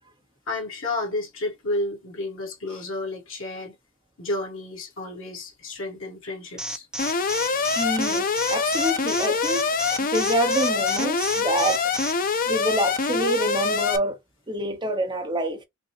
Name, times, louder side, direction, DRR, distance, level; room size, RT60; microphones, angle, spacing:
voice 1, 0.5-3.7 4.2-6.9, left 2 dB, 75° left, 1.5 m, -31 dB
Alarm, 6.6-12.1, right 2 dB, 5° right, 0.4 m, -31 dB
Alarm 2, 7.0-14.0, left 5 dB, 45° left, 0.6 m, -24 dB
voice 2, 7.5-11.9 12.5-14.2 14.5-15.6, right 1 dB, 25° right, 0.8 m, -27 dB
5.1 x 2.0 x 3.1 m
head